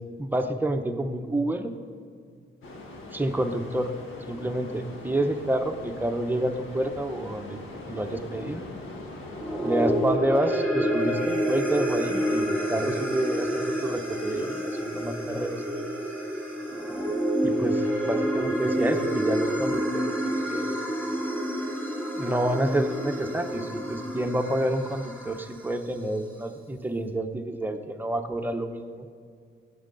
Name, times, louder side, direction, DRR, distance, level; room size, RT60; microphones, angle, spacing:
voice 1, 0.2-1.7 3.1-3.9 4.3-7.6 7.9-8.6 9.6-15.6 17.4-20.0 20.5-20.8 22.2-29.1, right 1 dB, 10° right, 5 dB, 0.7 m, -28 dB
sound 1, 2.6-10.2, left 2 dB, 85° left, 1.6 m, -42 dB
sound 2, 9.3-25.7, equal, 10° left, 2.8 m, -28 dB
16.5 x 8.3 x 3.9 m, 2.2 s
wide cardioid pair, 155°, 20 cm